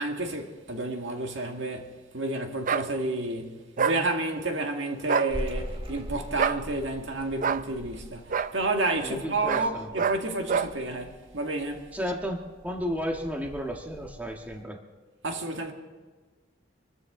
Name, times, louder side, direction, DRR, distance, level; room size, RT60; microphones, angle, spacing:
voice 1, 0.0-11.9 15.2-15.7, right 2 dB, 70° right, 1.9 m, -30 dB
sound 1, 2.6-2.9 3.8-4.0 5.0-5.3 6.4-6.6 7.4-7.6 8.3-8.5 9.5-9.7 10.0-10.2 10.5-10.7, right 6 dB, 45° right, 0.5 m, -26 dB
sound 2, 5.3-14.6, equal, 30° right, 1.9 m, -42 dB
voice 2, 9.0-9.9 11.9-12.4 12.6-14.8, equal, 10° right, 1.5 m, -33 dB
26.0 x 14.0 x 3.8 m
head